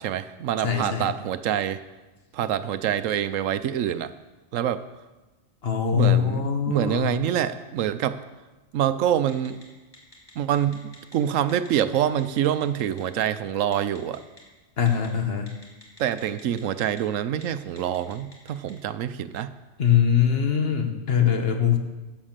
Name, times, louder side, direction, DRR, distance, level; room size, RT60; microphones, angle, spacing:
voice 1, 0.0-1.8 2.3-4.1 4.5-4.8 5.9-8.2 8.7-9.6 10.4-14.2 16.0-19.5, right 10 dB, 85° right, 13 dB, 1.0 m, -26 dB
voice 2, 0.6-1.1 5.6-7.2 14.8-15.5 19.8-21.8, left 8 dB, 55° left, 5 dB, 1.3 m, -22 dB
Telephone, 9.3-9.6 9.9-11.1 11.5-11.7 11.9-13.0 13.7-14.4 14.9-15.1 15.5-17.0 17.3-17.4 17.8-18.7, left 1 dB, 20° left, 2.6 m, -48 dB
11.5 x 7.5 x 7.3 m, 1.2 s
omnidirectional pair, 1.3 m